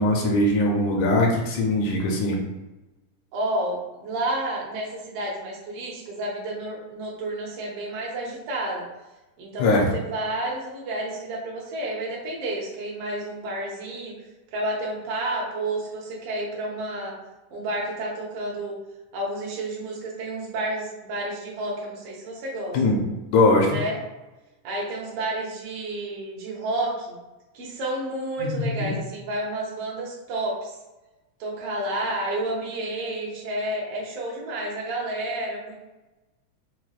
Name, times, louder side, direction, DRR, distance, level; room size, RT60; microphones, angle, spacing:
voice 1, 0.0-2.4 9.6-9.9 22.7-23.0 23.3-23.8 28.4-28.9, left 2 dB, 80° left, 0 dB, 1.9 m, -21 dB
voice 2, 3.3-8.8 9.4-14.1 14.5-17.1 17.5-18.8 19.1-22.8 23.6-24.0 24.6-27.1 27.5-30.7 31.4-35.8, right 1 dB, 65° right, -3 dB, 1.5 m, -30 dB
5.8 x 2.2 x 2.3 m, 1.1 s
omnidirectional pair, 3.5 m